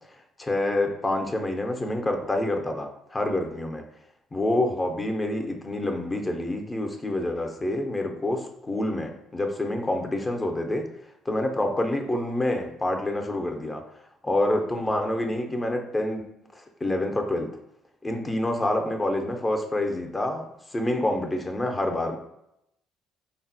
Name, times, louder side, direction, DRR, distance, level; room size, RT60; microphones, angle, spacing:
voice 1, 0.4-3.8 4.3-10.9 11.3-13.8 14.2-16.2 16.5-17.5 18.0-22.2, left 1 dB, 25° left, 3 dB, 0.5 m, -27 dB
3.7 x 2.1 x 2.6 m, 0.80 s
hypercardioid pair, 55°, 0 cm